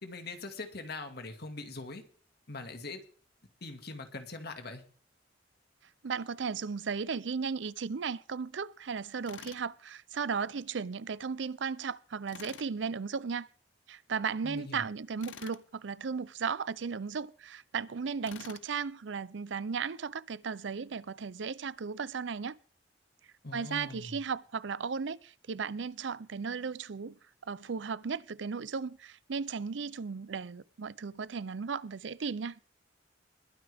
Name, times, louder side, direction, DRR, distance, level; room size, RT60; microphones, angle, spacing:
voice 1, 0.0-2.0 2.5-3.0 3.6-4.8 14.4-14.8 23.4-24.2, left 3 dB, 60° left, 2.1 m, -42 dB
voice 2, 6.0-13.5 13.9-22.5 23.5-27.1 27.5-32.6, right 5 dB, 70° right, 0.5 m, -35 dB
Tools, 9.3-9.7 12.3-12.7 15.2-15.6 18.2-18.7, left 8 dB, 90° left, 0.7 m, -48 dB
21.0 x 9.2 x 3.5 m
head